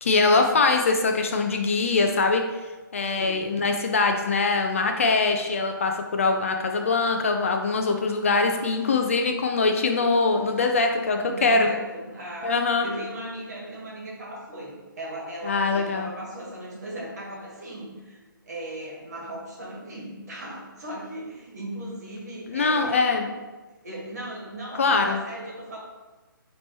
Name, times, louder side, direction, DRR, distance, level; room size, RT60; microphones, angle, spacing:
voice 1, 0.0-2.4 2.9-11.7 12.4-12.9 15.4-16.1 22.5-23.3 24.8-25.2, left 3 dB, 40° left, 4 dB, 0.3 m, -23 dB
voice 2, 3.1-3.4 8.3-8.8 11.2-23.1 23.8-25.8, right 1 dB, 50° right, -3 dB, 1.4 m, -38 dB
5.0 x 3.0 x 3.0 m, 1.2 s
figure-of-eight pair, 140°, 12 cm